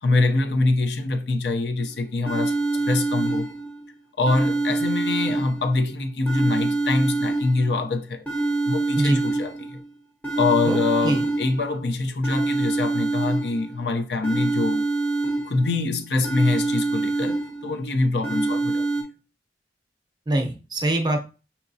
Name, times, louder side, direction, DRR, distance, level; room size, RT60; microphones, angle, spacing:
voice 1, 0.0-2.5 2.9-3.5 4.2-8.2 8.7-9.8 10.4-14.9 15.5-17.4 17.6-18.9, left 3 dB, 70° left, 0.7 m, -24 dB
sound 1, 1.8-1.9 2.3-3.8 4.3-5.8 6.3-7.8 8.3-9.8 10.2-11.8 12.2-13.8 14.2-15.8 16.2-17.8 18.2-19.0, right 3 dB, 10° left, 0.8 m, -26 dB
voice 2, 20.3-21.3, right 1 dB, 25° right, 0.7 m, -23 dB
5.8 x 2.9 x 2.7 m
head